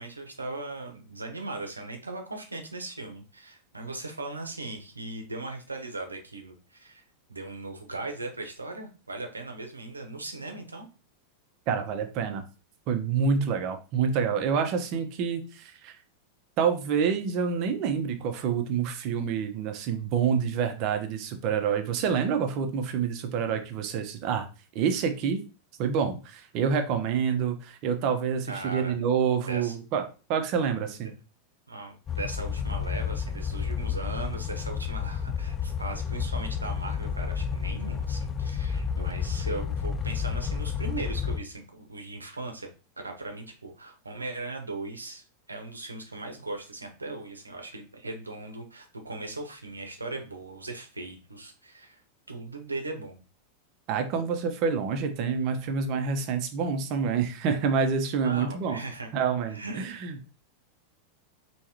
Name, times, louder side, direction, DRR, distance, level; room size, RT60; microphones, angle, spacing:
voice 1, 0.0-7.0 7.3-10.9 28.5-29.0 29.5-29.8 31.7-42.7 43.0-52.0 52.3-53.2 58.2-59.1 59.5-60.1, right 2 dB, 80° right, 4 dB, 1.0 m, -38 dB
voice 2, 11.7-12.4 12.9-15.9 16.6-24.5 24.7-25.4 25.8-31.1 53.9-58.8 59.1-60.1, right 6 dB, 40° right, 7 dB, 0.8 m, -27 dB
sound 1, 32.1-41.4, left 7 dB, 25° left, 0.4 m, -31 dB
4.7 x 3.1 x 2.9 m, 0.33 s
figure-of-eight pair, 90°, 0 cm